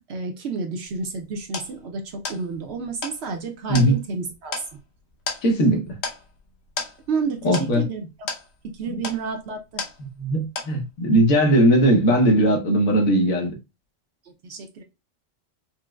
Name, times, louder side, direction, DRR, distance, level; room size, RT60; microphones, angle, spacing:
voice 1, 0.1-4.5 7.1-8.3 8.7-9.8 14.4-14.8, right 4 dB, 60° right, 0.7 m, -30 dB
sound 1, 0.9-10.3 10.6-11.1, left 4 dB, 55° left, 1.0 m, -35 dB
voice 2, 5.4-5.9 7.4-7.8 8.9-9.0 10.2-13.5, right 1 dB, 80° left, 1.3 m, -19 dB
4.5 x 2.0 x 2.2 m
omnidirectional pair, 1.4 m